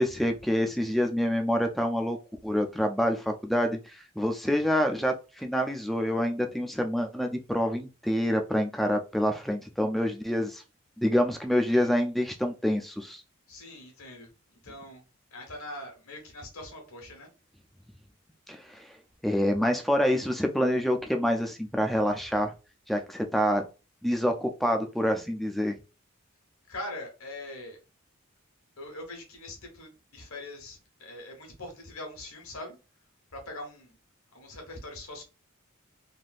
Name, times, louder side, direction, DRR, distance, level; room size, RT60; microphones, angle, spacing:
voice 1, 0.0-2.2 2.4-10.6 11.0-13.2 18.5-18.9 19.2-22.5 22.9-23.6 24.0-25.8, equal, ahead, 0.3 m, -27 dB
voice 2, 13.5-14.3 14.6-15.0 15.3-17.3 26.7-27.8 28.8-32.8 33.3-33.9 34.3-35.3, left 1 dB, 85° left, 1.2 m, -42 dB
3.4 x 2.6 x 2.4 m
head